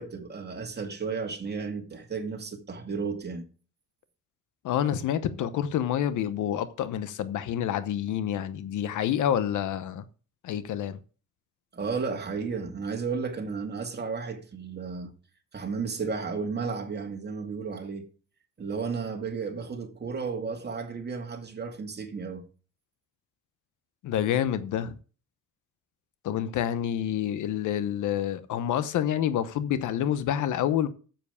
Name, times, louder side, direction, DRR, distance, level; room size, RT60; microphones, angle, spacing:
voice 1, 0.0-3.4 11.7-15.1 15.5-18.1 18.6-22.5, right 5 dB, 35° right, 2.5 m, -33 dB
voice 2, 4.6-10.0 10.4-11.0 24.0-24.9 26.2-30.9, left 10 dB, 80° left, 1.0 m, -28 dB
7.6 x 7.2 x 6.9 m
cardioid pair, 90°, 30 cm